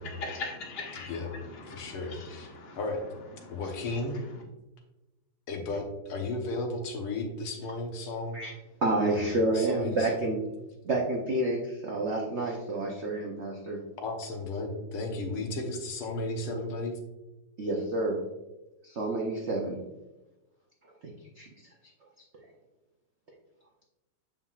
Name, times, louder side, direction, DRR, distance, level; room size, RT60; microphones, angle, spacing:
voice 1, 0.0-4.4, left 3 dB, 45° left, 2 dB, 0.8 m, -42 dB
voice 2, 1.7-2.5 2.8-3.0 3.5-4.2 5.5-8.4 9.1-10.4 14.0-16.9, left 2 dB, 85° left, 2 dB, 2.0 m, -34 dB
voice 3, 8.8-10.4 10.8-13.8 17.6-18.2 18.8-19.8 21.0-21.1 21.4-21.5, right 2 dB, 85° right, -1 dB, 0.6 m, -29 dB
7.2 x 5.6 x 2.4 m, 1.0 s
omnidirectional pair, 2.3 m